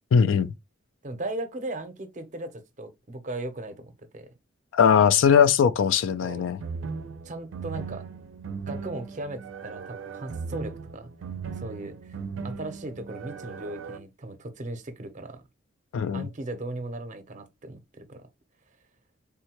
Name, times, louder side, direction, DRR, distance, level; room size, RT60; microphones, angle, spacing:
voice 1, 0.1-0.5 4.7-6.6 15.9-16.3, left 7 dB, 80° left, 0.3 m, -20 dB
voice 2, 1.0-4.3 6.2-6.5 7.2-8.0 8.7-11.1 11.5-12.2 12.4-15.4 16.1-18.3, right 2 dB, 40° right, 0.6 m, -37 dB
sound 1, 6.6-14.0, right 5 dB, 90° right, 0.4 m, -37 dB
3.6 x 2.2 x 2.8 m
head